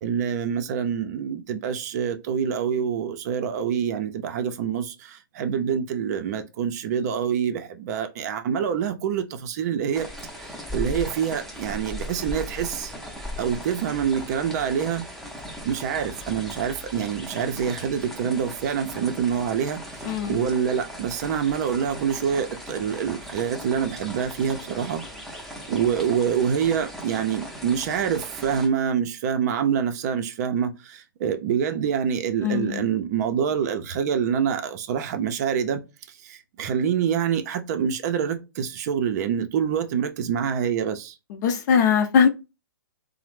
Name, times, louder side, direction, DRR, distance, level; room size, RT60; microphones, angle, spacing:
voice 1, 0.0-10.1 10.4-12.9 13.4-15.1 15.7-25.0 25.7-35.8 36.2-41.1, right 8 dB, 50° right, 0.5 m, -26 dB
sound 1, 9.9-28.7, equal, ahead, 0.6 m, -38 dB
voice 2, 20.0-20.4 32.4-32.8 41.3-42.3, left 7 dB, 50° left, 0.6 m, -21 dB
3.1 x 2.0 x 3.2 m
hypercardioid pair, 125°, 12 cm